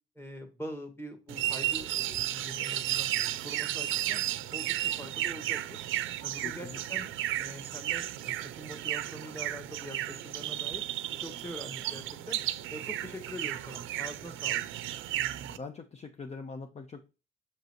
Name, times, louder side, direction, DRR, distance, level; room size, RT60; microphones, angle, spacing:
voice 1, 0.2-3.1 3.4-4.2 4.5-5.8 6.2-7.1 7.4-10.8 11.2-12.4 12.7-14.6, equal, 10° left, 5 dB, 1.7 m, -44 dB
sound 1, 1.3-15.6, right 13 dB, 85° right, 0.5 m, -33 dB
voice 2, 6.4-6.8 15.5-17.0, left 4 dB, 35° left, 6 dB, 0.8 m, -42 dB
6.6 x 5.4 x 3.0 m, 0.30 s
cardioid pair, 90°, 20 cm